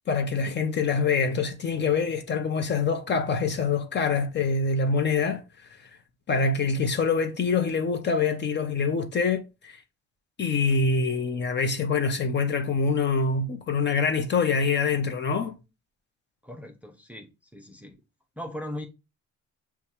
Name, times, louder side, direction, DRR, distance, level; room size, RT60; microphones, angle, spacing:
voice 1, 0.1-5.4 6.3-9.8 10.4-15.6, left 4 dB, 35° left, 0.7 m, -25 dB
voice 2, 16.4-18.0 18.4-18.9, left 1 dB, 5° right, 0.5 m, -39 dB
6.8 x 2.3 x 2.7 m
cardioid pair, 125°, 31 cm